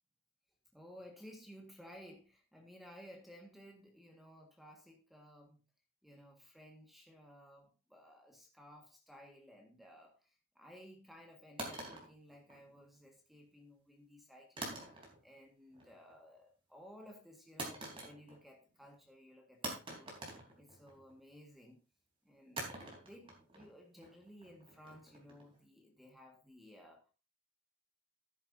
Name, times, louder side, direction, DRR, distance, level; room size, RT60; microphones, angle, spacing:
voice 1, 0.7-5.6 6.0-14.9 15.2-20.2 20.6-21.8 22.3-22.7 23.0-27.0, equal, ahead, 2 dB, 1.8 m, -57 dB
sound 1, 11.6-13.0 14.6-15.4 15.7-16.2 17.6-18.5 18.8-18.9 19.6-21.2 22.6-25.6, right 2 dB, 25° right, 3.8 m, -46 dB
13.5 x 10.0 x 2.7 m, 0.31 s
head